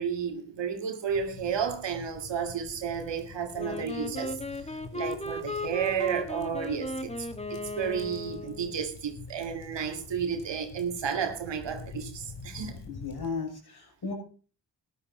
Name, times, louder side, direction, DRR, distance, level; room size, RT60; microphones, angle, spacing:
voice 1, 0.0-7.1 7.5-12.8, right 7 dB, 75° right, 2.1 m, -32 dB
sound 1, 1.1-13.3, left 4 dB, 80° left, 2.6 m, -47 dB
Wind instrument woodwind instrument, 3.5-8.7, left 1 dB, 15° left, 1.5 m, -36 dB
voice 2, 12.9-14.1, left 4 dB, 60° left, 6.7 m, -35 dB
14.0 x 11.0 x 4.3 m
cardioid pair, 55°, 43 cm